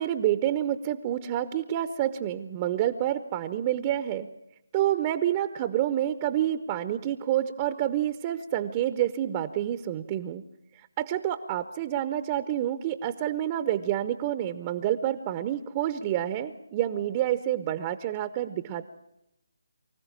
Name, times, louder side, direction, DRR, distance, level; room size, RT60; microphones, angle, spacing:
voice 1, 0.0-4.3 4.7-10.4 11.0-18.9, right 12 dB, 25° right, 12 dB, 0.8 m, -28 dB
24.5 x 15.0 x 8.9 m, 0.86 s
figure-of-eight pair, 150°, 0 cm